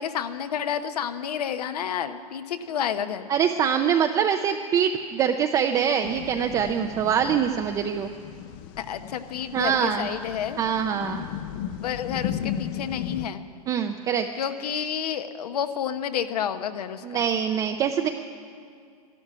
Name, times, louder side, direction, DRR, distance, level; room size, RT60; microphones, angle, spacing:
voice 1, 0.0-3.2 8.8-10.6 11.8-13.4 14.3-17.2, left 8 dB, 75° left, 9 dB, 1.0 m, -30 dB
voice 2, 3.3-8.1 9.5-10.1 10.6-11.3 13.7-14.3 17.0-18.1, right 8 dB, 15° right, 5 dB, 0.4 m, -24 dB
sound 1, 6.0-13.3, left 10 dB, 35° left, 0.5 m, -35 dB
13.0 x 11.5 x 9.7 m, 2.3 s
hypercardioid pair, 145°, 20 cm